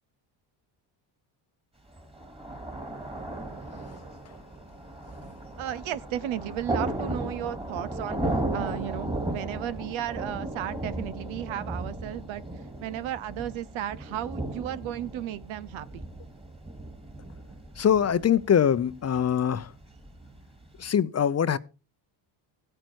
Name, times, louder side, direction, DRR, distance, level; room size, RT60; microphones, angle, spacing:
Thunder, 1.9-20.8, right 1 dB, 10° right, 2.2 m, -36 dB
voice 1, 5.6-8.2 8.5-12.4 12.8-16.0, right 11 dB, 70° right, 1.0 m, -34 dB
voice 2, 17.8-19.7 20.8-21.6, left 8 dB, 30° left, 0.7 m, -23 dB
15.0 x 9.2 x 4.6 m
cardioid pair, 95°, 49 cm